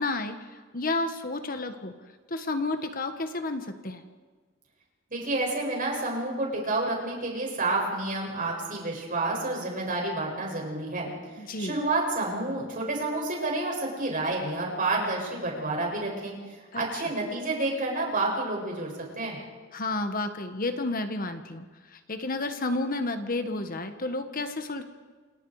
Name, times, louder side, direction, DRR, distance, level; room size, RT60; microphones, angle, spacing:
voice 1, 0.0-1.9 2.3-4.0 11.4-11.8 16.7-17.0 19.7-21.7 21.9-24.8, left 2 dB, 45° left, 7 dB, 1.5 m, -31 dB
voice 2, 5.1-11.1 11.6-16.3 16.7-19.4, right 2 dB, 45° right, -1 dB, 7.6 m, -29 dB
28.5 x 26.5 x 5.0 m, 1.5 s
head